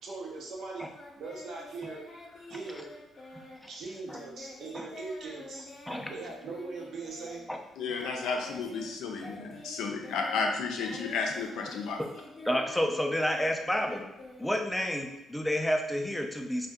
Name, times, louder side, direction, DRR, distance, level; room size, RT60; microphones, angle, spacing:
voice 1, 0.0-2.1 2.5-2.9 3.6-5.7 6.1-7.5, right 3 dB, 70° right, -2 dB, 0.7 m, -40 dB
Singing, 0.9-8.9 9.2-15.0, left 2 dB, 40° left, 0.7 m, -47 dB
voice 2, 3.4-3.7 4.1-4.2 4.7-4.9 5.9-6.1 7.5-7.6 12.4-14.1 14.4-16.7, equal, 5° left, 2 dB, 0.4 m, -30 dB
voice 3, 7.8-12.0, left 4 dB, 85° left, 2 dB, 0.5 m, -32 dB
2.6 x 2.2 x 3.5 m, 0.94 s
cardioid pair, 90°, 0 cm